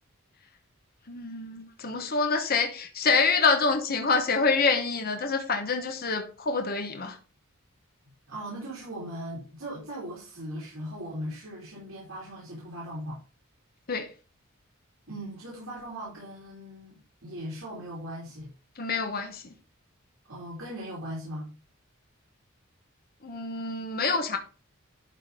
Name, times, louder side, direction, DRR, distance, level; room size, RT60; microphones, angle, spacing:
voice 1, 1.1-7.2 13.9-14.1 18.8-19.4 23.2-24.4, left 4 dB, 45° left, 1.2 m, -26 dB
voice 2, 8.3-13.2 15.1-18.5 20.3-21.5, equal, 75° right, 3.5 m, -39 dB
11.5 x 4.0 x 5.0 m
head